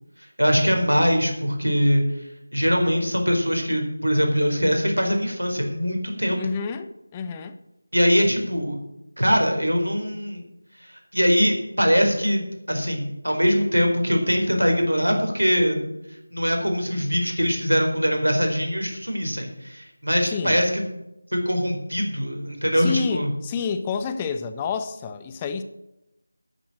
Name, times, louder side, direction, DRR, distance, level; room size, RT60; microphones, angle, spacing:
voice 1, 0.2-6.4 7.9-8.8 9.2-10.4 10.8-15.8 16.1-20.8 21.3-23.3, equal, 85° right, 3 dB, 4.2 m, -22 dB
voice 2, 6.4-7.6 20.2-20.6 22.7-25.6, left 5 dB, 15° left, 10 dB, 0.5 m, -29 dB
10.5 x 8.7 x 7.3 m, 0.90 s
figure-of-eight pair, 165°, 0 cm